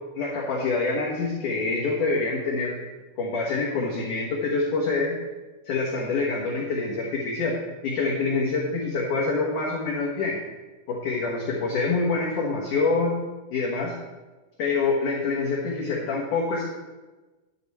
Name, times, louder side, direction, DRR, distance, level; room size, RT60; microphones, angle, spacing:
voice 1, 0.1-2.8 3.2-5.2 5.6-7.6 7.8-10.4 10.9-13.1 13.5-13.9 14.6-16.6, left 3 dB, 80° left, -4 dB, 1.8 m, -26 dB
11.5 x 8.5 x 4.2 m, 1.2 s
omnidirectional pair, 5.7 m